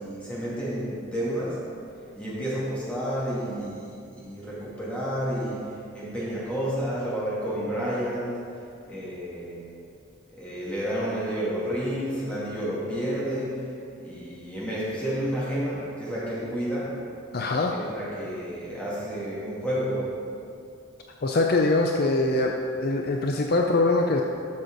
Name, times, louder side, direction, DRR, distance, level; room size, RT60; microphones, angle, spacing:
voice 1, 0.0-1.6 2.2-8.4 8.8-9.6 10.4-13.6 14.0-16.9 17.7-20.1, equal, 5° left, -8 dB, 2.3 m, -30 dB
voice 2, 17.3-17.8 21.2-22.5 22.8-24.2, left 2 dB, 50° left, 2 dB, 0.5 m, -23 dB
12.5 x 6.3 x 4.0 m, 2.5 s
head